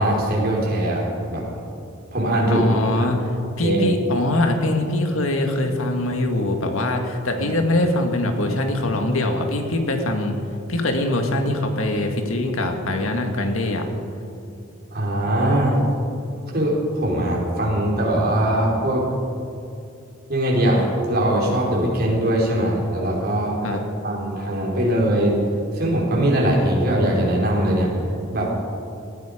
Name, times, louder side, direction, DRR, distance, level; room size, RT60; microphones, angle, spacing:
voice 1, 0.0-1.4 2.1-2.7 3.0-3.1 3.6-3.8 7.4-7.5 14.9-15.8 16.5-19.0 20.3-25.4 25.7-27.9 28.3-28.5, right 1 dB, 50° right, -3 dB, 4.4 m, -21 dB
voice 2, 2.5-3.3 3.6-10.4 10.7-13.9 23.6-23.8, left 1 dB, 80° left, 4 dB, 1.9 m, -22 dB
18.5 x 15.0 x 5.1 m, 2.6 s
head